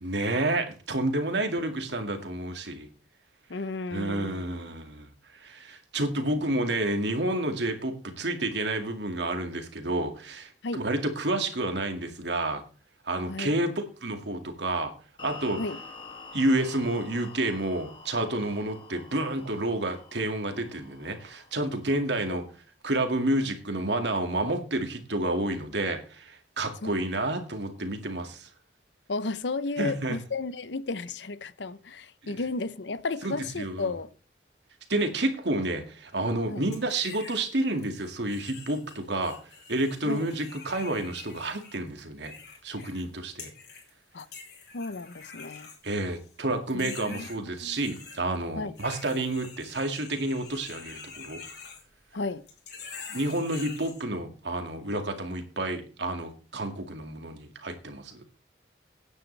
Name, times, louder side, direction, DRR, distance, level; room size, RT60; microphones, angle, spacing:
voice 1, 0.0-2.9 3.9-12.6 13.0-14.9 15.2-15.6 16.3-22.4 22.8-28.5 29.8-30.2 32.2-32.4 33.2-33.9 34.9-39.4 39.7-42.3 42.6-43.5 45.8-51.4 53.1-58.2, right 1 dB, 75° right, 2.2 m, -30 dB
voice 2, 3.5-4.7 10.6-10.8 13.3-13.5 15.6-15.8 22.3-22.4 26.8-26.9 29.1-34.1 36.5-36.6 40.0-40.3 44.1-44.3 44.7-45.7 46.7-47.8 48.6-48.7 52.1-52.4, left 3 dB, 85° left, 0.8 m, -34 dB
sound 1, 15.2-22.4, left 3 dB, 30° left, 2.3 m, -47 dB
sound 2, 36.7-37.5 37.8-43.1 43.4-43.9 44.2-46.3 46.7-48.2 48.8-52.2 52.5-54.0, left 5 dB, 60° left, 5.0 m, -45 dB
17.0 x 9.6 x 3.4 m
head